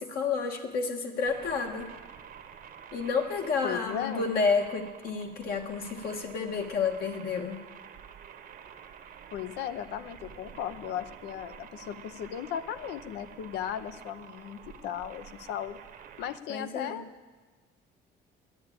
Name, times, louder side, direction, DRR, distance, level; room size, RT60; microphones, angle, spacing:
voice 1, 0.0-1.9 2.9-7.6 16.5-17.0, left 5 dB, 65° left, 3 dB, 1.6 m, -30 dB
sound 1, 1.2-16.4, right 8 dB, 60° right, 0.9 m, -49 dB
voice 2, 3.6-4.3 9.3-15.8 16.2-17.0, left 10 dB, 85° left, 11 dB, 0.7 m, -36 dB
11.0 x 10.0 x 8.6 m, 1.4 s
cardioid pair, 110°, 17 cm